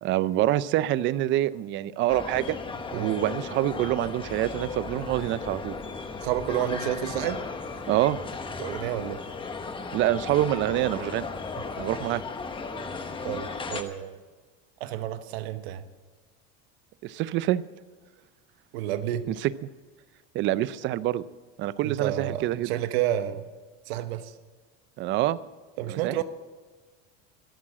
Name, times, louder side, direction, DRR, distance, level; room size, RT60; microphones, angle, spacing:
voice 1, 0.0-2.6 2.9-5.8 7.9-8.2 9.9-11.3 11.8-12.2 17.0-17.6 19.3-19.7 20.3-21.2 21.6-22.7 25.0-25.4 25.9-26.2, right 14 dB, 40° right, 17 dB, 0.5 m, -26 dB
sound 1, 2.1-13.8, left 4 dB, 15° left, 1.1 m, -36 dB
voice 2, 6.2-7.4 8.6-9.2 13.2-14.2 14.8-15.8 18.7-19.3 21.8-23.4 23.9-24.3 25.8-26.2, right 11 dB, 90° right, 11 dB, 1.1 m, -30 dB
13.0 x 12.5 x 7.5 m, 1.3 s
cardioid pair, 150°, 30 cm